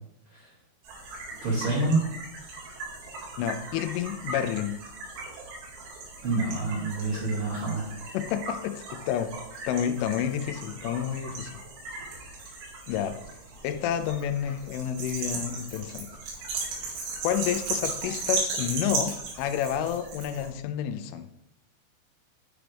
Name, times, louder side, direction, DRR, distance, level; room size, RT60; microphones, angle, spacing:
sound 1, 0.8-20.5, right 3 dB, 85° right, 4.9 m, -37 dB
voice 1, 1.4-2.0 6.2-7.9, right 3 dB, 35° right, -10 dB, 2.7 m, -27 dB
voice 2, 3.4-4.8 8.1-9.3 9.7-11.5 12.9-13.1 13.6-16.1 17.2-21.3, left 9 dB, 85° left, 9 dB, 3.2 m, -29 dB
10.0 x 6.1 x 3.4 m, 0.81 s
omnidirectional pair, 5.5 m